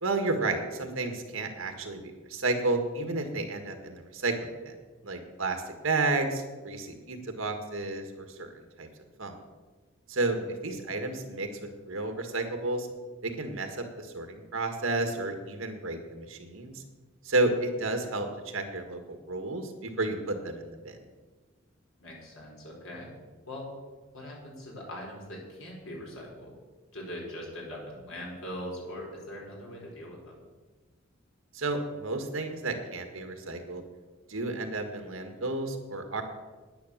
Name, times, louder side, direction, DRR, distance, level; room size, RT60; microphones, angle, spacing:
voice 1, 0.0-4.7 5.0-8.5 8.8-8.9 9.2-9.4 10.1-10.4 10.6-12.9 13.2-16.8 17.3-21.0 31.5-33.8 34.3-36.2, right 2 dB, 75° right, 5 dB, 1.8 m, -31 dB
voice 2, 22.0-23.1 23.5-23.7 24.1-26.5 26.9-30.4, left 1 dB, 75° left, -2 dB, 5.0 m, -41 dB
10.0 x 9.9 x 7.4 m, 1.3 s
head